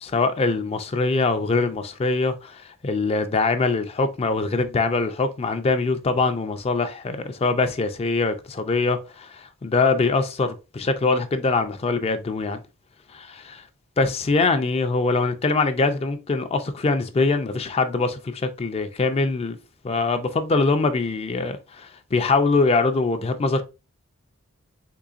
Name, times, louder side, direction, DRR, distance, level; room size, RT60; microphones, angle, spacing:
voice 1, 0.0-12.6 13.1-13.6 14.0-19.6 19.8-23.6, left 3 dB, 30° left, 0.3 m, -23 dB
3.8 x 3.1 x 2.4 m
head